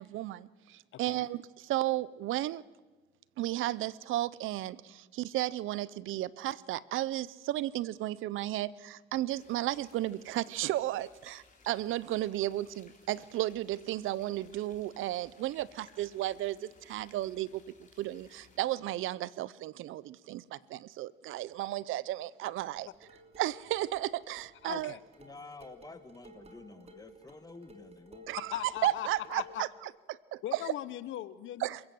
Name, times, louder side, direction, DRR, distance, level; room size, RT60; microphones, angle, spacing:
voice 1, 0.0-2.6 3.4-17.6 18.0-22.9 23.4-24.9 28.3-28.5 28.8-29.7 30.1-30.6 31.6-31.8, right 15 dB, 85° right, 20 dB, 0.6 m, -34 dB
voice 2, 0.9-1.2 24.6-25.0 28.5-29.6 30.4-31.7, left 13 dB, 80° left, 17 dB, 0.9 m, -39 dB
sound 1, 9.3-18.6, left 4 dB, 40° left, 3.9 m, -61 dB
sound 2, 22.8-29.7, equal, 30° right, 3.4 m, -55 dB
voice 3, 25.2-28.3, left 3 dB, 20° left, 9 dB, 2.1 m, -50 dB
27.0 x 16.0 x 7.8 m, 1.3 s
cardioid pair, 90°, 20 cm